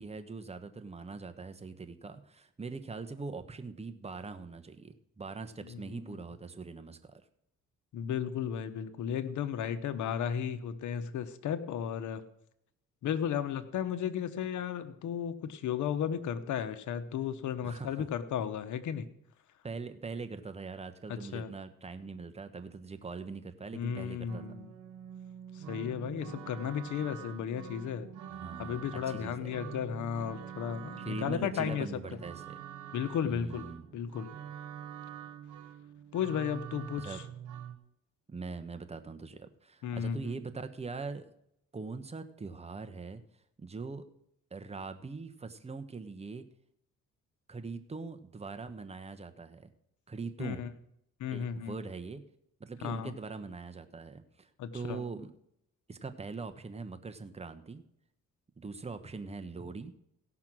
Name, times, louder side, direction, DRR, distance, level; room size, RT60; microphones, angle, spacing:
voice 1, 0.0-7.2 17.6-18.1 19.6-24.4 28.3-29.5 31.0-32.6 33.2-33.8 37.0-37.2 38.3-41.3 41.7-43.2 43.6-44.0 44.5-46.5 47.5-49.7 50.1-50.6 51.3-52.2 52.6-55.3 55.9-57.8 58.6-59.9, right 4 dB, 20° right, 8 dB, 1.1 m, -42 dB
voice 2, 5.6-6.0 7.9-12.2 13.0-19.1 21.1-21.5 23.7-24.7 25.5-28.1 28.6-32.0 32.9-33.7 33.9-34.3 36.1-37.2 39.8-40.3 50.4-50.7 51.2-51.8 52.8-53.1 54.6-55.0, left 8 dB, 75° left, 10 dB, 1.1 m, -34 dB
sound 1, 24.3-37.8, right 9 dB, 85° right, 1.3 m, -46 dB
16.5 x 5.9 x 6.1 m, 0.76 s
cardioid pair, 90°, 30 cm